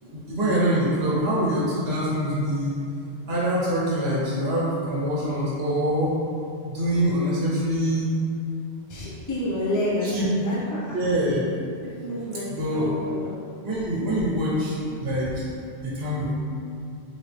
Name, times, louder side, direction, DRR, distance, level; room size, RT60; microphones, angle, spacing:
voice 1, 0.0-2.7 3.2-6.1 6.7-8.1 10.0-10.3 10.9-11.4 12.5-12.9 13.6-14.7 15.0-15.4 15.8-16.3, equal, 80° right, -7 dB, 1.1 m, -24 dB
voice 2, 8.9-11.0 11.8-13.3, left 1 dB, 20° left, -7 dB, 0.7 m, -29 dB
3.8 x 3.1 x 3.3 m, 2.6 s
omnidirectional pair, 1.0 m